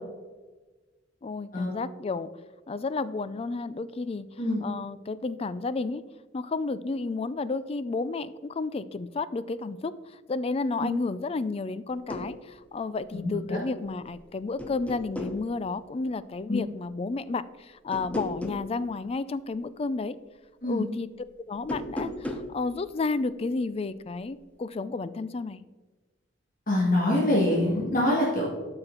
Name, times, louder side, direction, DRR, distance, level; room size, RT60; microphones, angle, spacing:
voice 1, 1.2-2.3 2.7-4.3 4.6-6.0 6.3-20.2 20.7-21.1 21.5-25.6, left 3 dB, 35° left, 15 dB, 0.4 m, -32 dB
sound 1, 11.9-12.3 13.9-14.2 14.6-15.4 17.9-18.7 21.6-22.5, left 1 dB, 10° left, 0.8 m, -35 dB
voice 2, 13.1-13.6 16.5-16.6 20.6-20.9 26.7-28.5, left 1 dB, 50° left, -4 dB, 2.0 m, -25 dB
12.5 x 5.8 x 3.9 m, 1.3 s
head